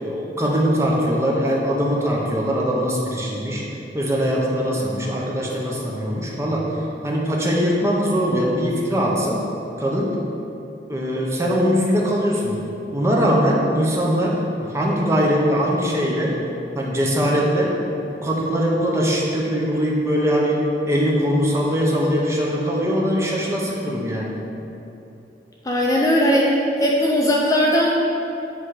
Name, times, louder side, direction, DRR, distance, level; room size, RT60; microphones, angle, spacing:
voice 1, 0.0-3.6 3.9-6.7 7.0-9.4 9.8-10.2 10.9-12.6 12.9-16.4 16.7-17.8 18.1-20.6 20.9-24.3, equal, 15° right, -3 dB, 0.7 m, -21 dB
voice 2, 25.7-26.5 26.8-27.9, equal, 20° left, -2 dB, 0.4 m, -18 dB
7.8 x 2.8 x 4.8 m, 2.9 s
head